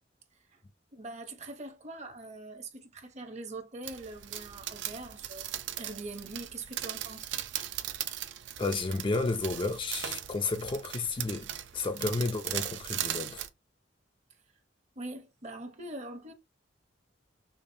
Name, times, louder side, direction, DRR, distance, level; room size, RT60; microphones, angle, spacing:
voice 1, 0.9-7.3 15.0-16.3, right 2 dB, 40° right, 0.7 m, -43 dB
sound 1, 3.8-13.5, right 11 dB, 70° right, 0.5 m, -38 dB
voice 2, 8.6-13.4, left 3 dB, 25° left, 0.4 m, -32 dB
5.1 x 2.1 x 2.6 m
head